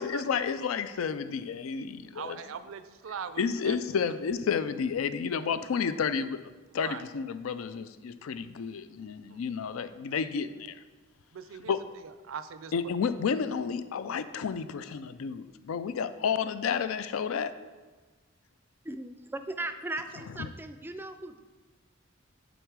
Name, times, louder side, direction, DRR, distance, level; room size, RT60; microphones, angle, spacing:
voice 1, 0.0-2.4 3.4-6.4 6.7-10.8 11.7-11.8 12.7-17.6, left 6 dB, 90° left, 13 dB, 0.4 m, -31 dB
voice 2, 2.1-3.8 6.7-7.0 9.3-9.4 11.3-11.7 12.0-12.7, right 7 dB, 80° right, 12 dB, 0.4 m, -41 dB
voice 3, 18.9-21.4, right 2 dB, 10° right, 8 dB, 0.3 m, -37 dB
8.0 x 4.0 x 4.7 m, 1.3 s
head